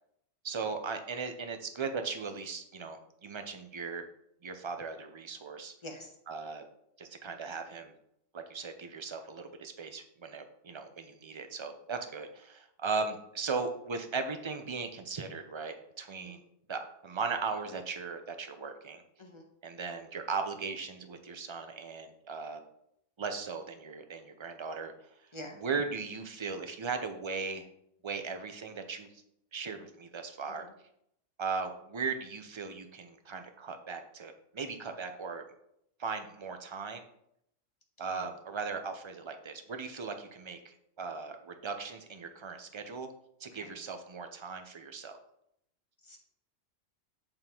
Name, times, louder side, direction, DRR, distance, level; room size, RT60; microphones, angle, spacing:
voice 1, 0.4-4.0 4.4-5.7 6.3-6.6 7.0-7.9 8.3-16.4 16.7-19.0 19.6-22.6 23.2-24.9 25.5-27.7 28.0-29.2 29.5-30.7 31.4-35.4 36.0-37.0 38.0-43.1 43.4-45.2, right 4 dB, 35° right, 6 dB, 0.5 m, -38 dB
voice 2, 5.8-6.1 16.2-16.3 19.2-19.4 25.3-25.6 38.1-38.3 43.5-43.7 46.0-46.2, left 1 dB, 25° left, 1 dB, 1.2 m, -45 dB
8.8 x 3.7 x 4.5 m, 0.74 s
omnidirectional pair, 1.4 m